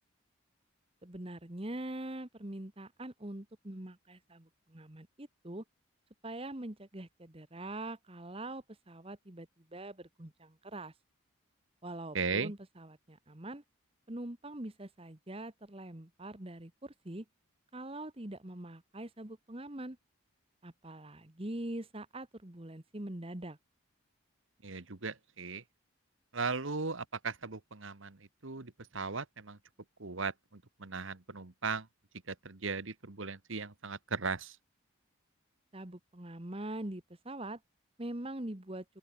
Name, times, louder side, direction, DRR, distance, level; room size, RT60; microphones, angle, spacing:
voice 1, 1.0-5.6 6.2-10.9 11.8-13.6 14.1-17.2 17.7-20.0 20.6-23.6 35.7-37.6 38.0-38.8, right 1 dB, 25° right, 1.4 m, -43 dB
voice 2, 12.1-12.5 24.6-25.6 26.3-29.6 30.0-31.9 32.3-34.6, right 4 dB, 65° right, 1.4 m, -37 dB
open air
head